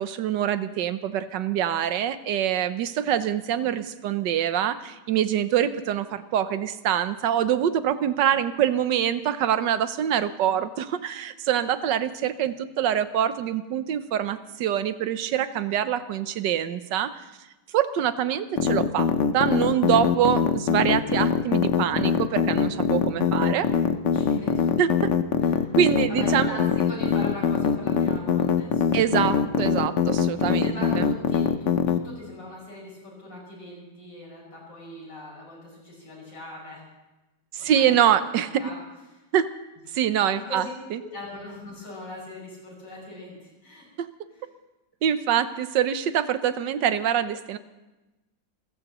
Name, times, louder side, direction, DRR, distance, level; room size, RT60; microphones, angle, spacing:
voice 1, 0.0-17.1 17.7-19.1 19.3-23.7 24.8-24.9 25.8-26.6 28.9-31.1 37.5-38.5 39.3-39.5 39.9-40.6 40.9-41.0 44.0-44.1 45.0-47.6, right 10 dB, 75° right, 12 dB, 1.5 m, -25 dB
sound 1, 18.6-32.0, left 7 dB, 55° left, 0.9 m, -22 dB
voice 2, 24.1-24.7 25.4-25.8 26.1-29.1 30.3-36.8 37.6-38.8 40.3-40.7 41.0-43.9 44.3-44.4, left 1 dB, 75° left, -3 dB, 7.1 m, -41 dB
28.0 x 15.5 x 3.0 m, 1.1 s
omnidirectional pair, 2.0 m